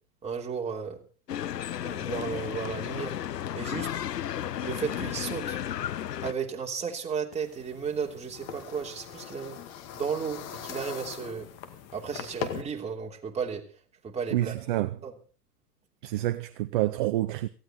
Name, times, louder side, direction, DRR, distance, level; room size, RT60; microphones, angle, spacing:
voice 1, 0.2-1.0 1.8-3.2 3.5-3.9 4.6-5.6 6.2-9.6 9.9-11.5 11.9-13.6 14.0-14.5 15.0-15.1, right 6 dB, 15° right, 3.2 m, -34 dB
sound 1, 1.3-6.3, left 10 dB, 75° left, 0.7 m, -33 dB
sound 2, 7.3-12.6, left 9 dB, 30° left, 2.1 m, -41 dB
voice 2, 14.3-14.9 16.0-17.5, right 15 dB, 30° right, 0.7 m, -28 dB
18.0 x 16.0 x 4.2 m
figure-of-eight pair, 105°, 49 cm